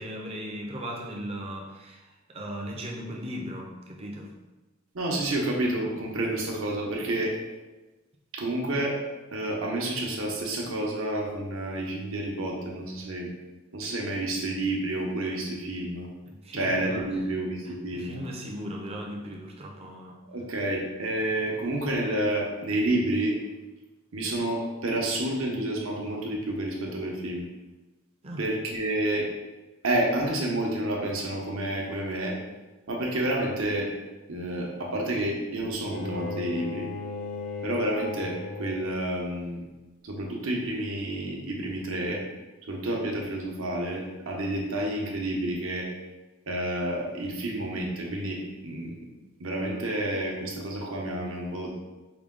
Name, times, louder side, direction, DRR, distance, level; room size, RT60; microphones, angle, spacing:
voice 1, 0.0-4.3 16.3-17.2 17.6-20.2 28.2-28.5, equal, 30° right, 0 dB, 0.5 m, -38 dB
voice 2, 4.9-7.3 8.3-9.0 9.3-13.3 13.7-16.1 16.5-18.2 20.3-23.4 24.1-27.5 28.4-29.2 29.8-32.4 32.9-33.9 34.3-36.9 37.6-39.6 40.0-42.2 42.7-45.9 46.5-49.0 49.4-51.7, right 1 dB, 70° right, -2 dB, 0.9 m, -29 dB
Bowed string instrument, 35.8-39.1, left 3 dB, 40° left, 0.5 m, -36 dB
4.9 x 2.2 x 3.6 m, 1.1 s
head